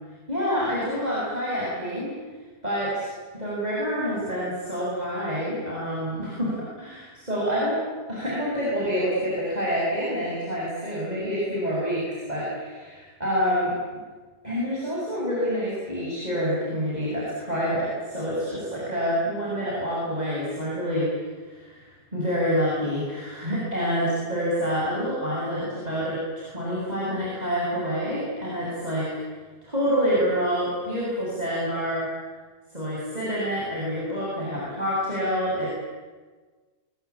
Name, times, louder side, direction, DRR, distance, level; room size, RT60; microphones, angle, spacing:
voice 1, 0.3-2.1 2.6-3.1 3.3-7.7 8.1-14.0 14.4-21.1 21.5-21.8 22.1-29.1 29.6-32.1 32.7-35.7, equal, 25° right, -6 dB, 8.2 m, -27 dB
27.5 x 23.0 x 8.9 m, 1.4 s
omnidirectional pair, 1.7 m